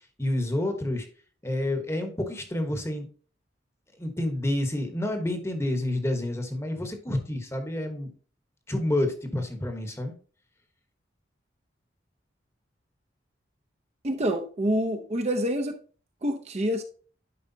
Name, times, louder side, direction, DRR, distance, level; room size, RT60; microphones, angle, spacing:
voice 1, 0.2-1.1 1.4-3.1 4.0-8.1 8.7-10.1, left 1 dB, 15° left, 6 dB, 1.1 m, -29 dB
voice 2, 14.0-15.7 16.2-16.8, equal, 35° right, 5 dB, 0.7 m, -27 dB
11.0 x 4.8 x 2.7 m, 0.41 s
head